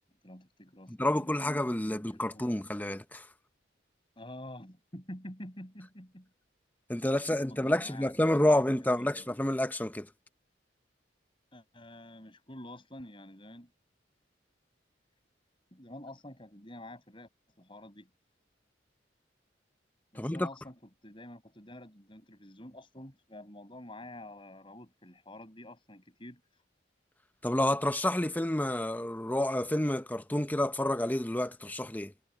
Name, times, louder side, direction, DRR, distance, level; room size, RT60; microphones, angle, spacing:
voice 1, 0.2-2.0 2.3-2.5 4.2-6.3 7.3-9.3 11.5-13.7 15.7-17.3 17.6-18.1 20.1-26.4, left 1 dB, 30° left, 7.3 m, -48 dB
voice 2, 0.9-3.3 6.9-10.1 20.2-20.5 27.4-32.1, left 1 dB, 10° left, 0.8 m, -29 dB
head